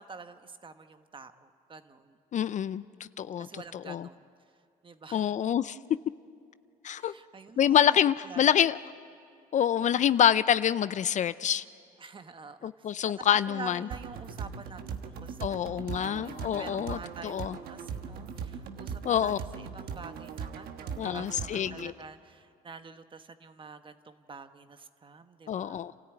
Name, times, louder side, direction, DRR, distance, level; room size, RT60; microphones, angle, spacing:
voice 1, 0.0-2.2 3.4-4.3 4.8-5.4 7.0-8.5 9.8-10.1 12.0-12.8 13.2-25.9, right 4 dB, 30° right, 9 dB, 1.2 m, -48 dB
voice 2, 2.3-2.8 3.2-4.1 5.1-5.8 6.8-7.1 7.6-8.8 9.5-11.6 12.6-13.9 15.4-17.6 19.0-19.4 21.0-21.9 25.5-25.9, left 9 dB, 50° left, 16 dB, 0.5 m, -26 dB
sound 1, 13.9-21.9, right 6 dB, 75° right, 1.3 m, -40 dB
29.0 x 13.5 x 9.2 m, 2.3 s
cardioid pair, 90°, 16 cm